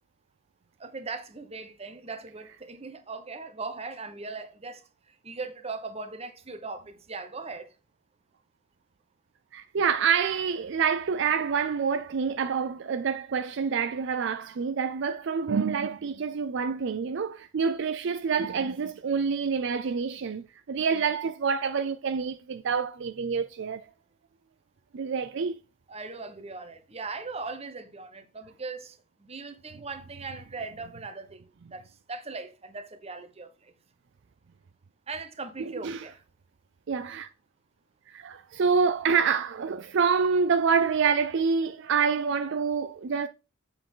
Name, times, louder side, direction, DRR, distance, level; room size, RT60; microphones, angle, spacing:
voice 1, 0.8-7.7 25.9-33.7 35.1-36.2, right 3 dB, 30° right, 1.1 m, -39 dB
voice 2, 9.5-23.9 24.9-25.6 35.6-36.0 36.9-37.3 38.1-43.3, right 6 dB, 60° right, 0.4 m, -27 dB
7.7 x 6.8 x 3.8 m
head